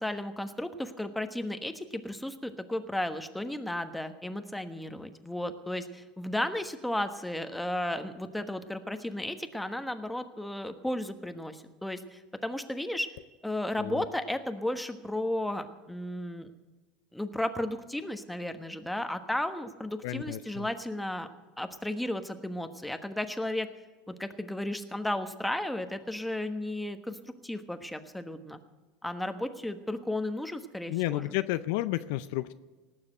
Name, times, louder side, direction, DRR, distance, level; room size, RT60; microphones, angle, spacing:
voice 1, 0.0-13.1 13.4-16.5 17.1-21.3 21.6-23.7 24.1-27.2 27.4-28.6 29.0-31.4, left 1 dB, 5° left, 8 dB, 1.3 m, -34 dB
voice 2, 20.0-20.4 30.9-32.5, left 16 dB, 70° left, 13 dB, 0.5 m, -31 dB
18.5 x 7.2 x 7.8 m, 1.3 s
hypercardioid pair, 85°, 0 cm